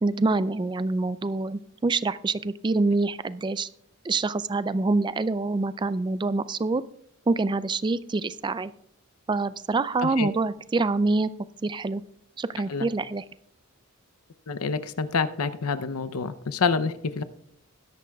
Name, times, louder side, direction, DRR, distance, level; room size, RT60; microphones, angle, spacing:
voice 1, 0.0-3.7 4.0-6.8 7.3-8.7 9.3-11.3 11.6-12.0 12.4-13.2, right 3 dB, 20° right, 15 dB, 0.3 m, -26 dB
voice 2, 14.5-17.2, left 5 dB, 80° left, 11 dB, 0.7 m, -27 dB
20.0 x 11.0 x 2.3 m, 0.73 s
head